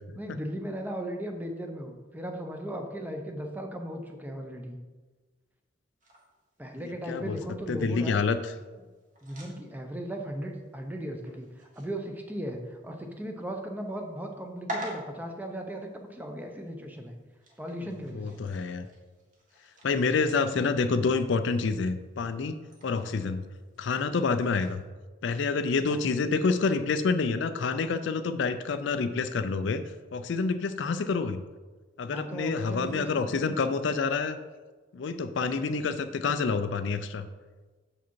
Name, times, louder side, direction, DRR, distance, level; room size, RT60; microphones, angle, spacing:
voice 1, 0.2-4.8 6.6-8.2 9.2-17.2 17.6-18.4 25.8-26.2 32.1-33.6, equal, 10° right, 3 dB, 0.6 m, -37 dB
sound 1, 6.0-24.8, equal, 40° right, 1.5 m, -48 dB
voice 2, 6.8-7.4 7.7-8.5 18.1-18.9 19.8-22.6 22.8-23.4 23.8-24.8 25.2-29.8 30.1-31.4 32.0-34.4 34.9-37.3, left 4 dB, 60° left, 10 dB, 0.4 m, -28 dB
6.9 x 4.9 x 4.6 m, 1.3 s
head